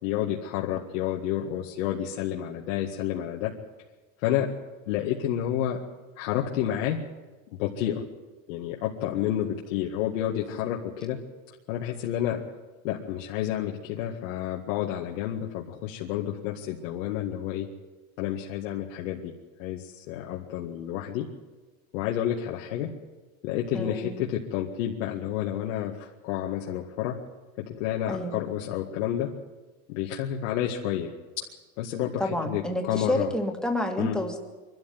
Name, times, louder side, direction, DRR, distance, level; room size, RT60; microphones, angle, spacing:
voice 1, 0.0-3.5 4.2-4.5 4.9-5.8 6.2-7.0 7.6-8.0 8.5-11.2 11.7-12.4 12.8-17.7 18.2-19.3 19.6-21.3 21.9-22.9 23.4-27.2 27.6-29.3 29.9-31.4 31.8-33.3 34.0-34.2, left 11 dB, 85° left, -1 dB, 2.0 m, -30 dB
voice 2, 23.7-24.1 28.1-28.4 32.2-34.4, left 1 dB, ahead, 3 dB, 2.2 m, -29 dB
23.5 x 13.0 x 9.5 m, 1.2 s
supercardioid pair, 145°, 39 cm